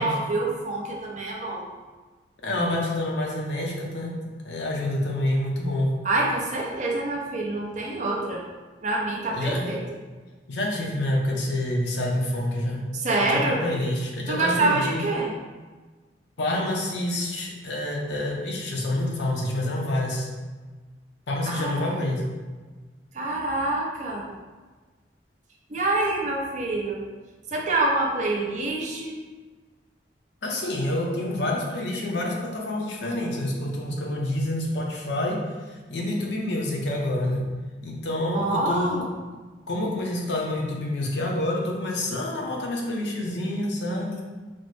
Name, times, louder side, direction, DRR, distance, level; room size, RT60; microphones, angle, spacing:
voice 1, 0.0-1.6 6.0-8.4 8.8-9.8 12.9-13.6 14.3-15.3 21.5-21.9 23.1-24.3 25.7-27.0 27.5-29.2 38.3-39.1, right 2 dB, 45° right, -2 dB, 0.6 m, -26 dB
voice 2, 2.4-4.2 4.4-6.0 9.3-9.7 10.5-12.8 13.2-15.0 16.4-20.3 21.3-22.3 30.4-37.5 37.8-38.9 39.7-44.2, left 1 dB, 85° left, -1 dB, 0.7 m, -27 dB
4.1 x 2.0 x 3.2 m, 1.3 s
head